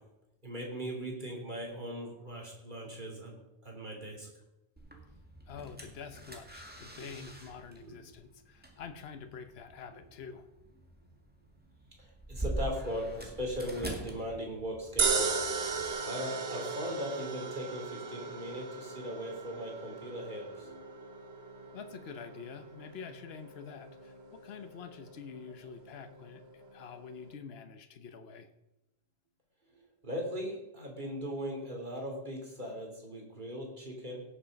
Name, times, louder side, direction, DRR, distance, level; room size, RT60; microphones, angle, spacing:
voice 1, 0.4-3.3 3.6-4.3 7.0-7.1 7.8-8.1 12.0-15.4 16.0-20.8 29.8-34.2, equal, 45° right, 0 dB, 3.2 m, -39 dB
sound 1, 4.8-15.9, right 1 dB, 10° right, 1.9 m, -44 dB
voice 2, 5.5-10.5 21.7-28.5, left 6 dB, 70° left, 9 dB, 1.1 m, -47 dB
sound 2, 15.0-27.3, right 5 dB, 75° right, 1.3 m, -37 dB
17.0 x 6.7 x 5.2 m, 0.93 s
omnidirectional pair, 1.1 m